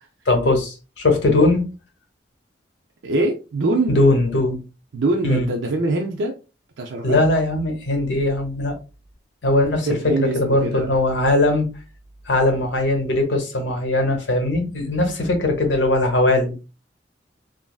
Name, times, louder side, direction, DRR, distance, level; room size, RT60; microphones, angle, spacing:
voice 1, 0.3-1.6 3.9-4.6 5.2-5.5 7.0-8.8 9.4-11.7 12.3-16.5, left 2 dB, 85° left, 0.8 m, -20 dB
voice 2, 3.0-4.0 4.9-6.3 6.8-7.2 9.9-10.9, right 2 dB, 85° right, 0.5 m, -23 dB
3.1 x 2.4 x 2.3 m
head